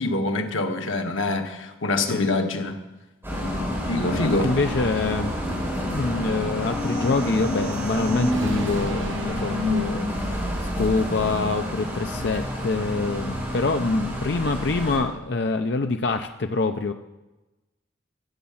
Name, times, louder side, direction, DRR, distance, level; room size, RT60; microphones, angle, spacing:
voice 1, 0.0-2.8 3.9-4.5, left 2 dB, 90° left, 5 dB, 1.3 m, -25 dB
sound 1, 3.2-15.0, equal, 10° right, 5.1 m, -28 dB
sound 2, 4.3-10.7, right 1 dB, 20° left, 5.3 m, -44 dB
voice 2, 4.4-5.3 5.9-10.1 10.6-16.9, left 3 dB, 60° left, 7 dB, 0.5 m, -25 dB
sound 3, 6.7-11.1, right 2 dB, 80° right, 0.9 m, -38 dB
14.5 x 8.6 x 7.2 m, 1.1 s
head